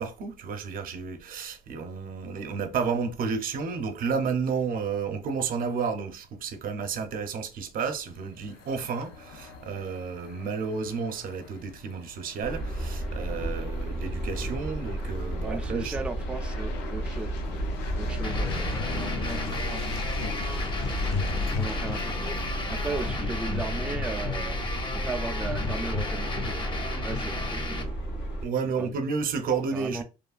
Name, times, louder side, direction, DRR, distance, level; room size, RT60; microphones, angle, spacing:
voice 1, 0.0-16.0 28.4-30.0, right 5 dB, 55° right, 0.6 m, -31 dB
sound 1, 7.8-23.1, left 6 dB, 90° left, 0.6 m, -43 dB
sound 2, 12.4-28.4, right 1 dB, 70° left, 1.5 m, -32 dB
voice 2, 15.4-17.3 18.0-20.6 21.5-24.6 24.9-26.6 27.0-27.9 28.8-28.9 29.7-30.0, right 3 dB, 5° right, 0.3 m, -37 dB
sound 3, 18.2-27.8, left 3 dB, 30° left, 0.7 m, -33 dB
3.0 x 2.3 x 2.4 m
cardioid pair, 110°, 17 cm